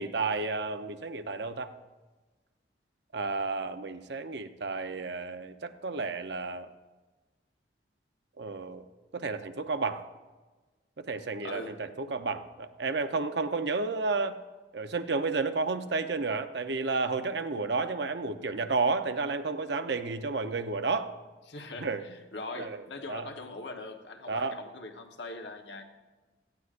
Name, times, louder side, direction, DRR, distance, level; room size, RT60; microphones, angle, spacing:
voice 1, 0.0-1.7 3.1-6.7 8.4-8.9 9.1-10.0 11.0-14.4 14.7-21.1 21.8-22.0 22.5-23.3 24.3-24.6, right 3 dB, 70° right, 8 dB, 0.8 m, -31 dB
voice 2, 11.4-11.8 21.5-25.8, left 2 dB, 75° left, 4 dB, 1.2 m, -41 dB
17.5 x 14.5 x 2.6 m, 1.2 s
head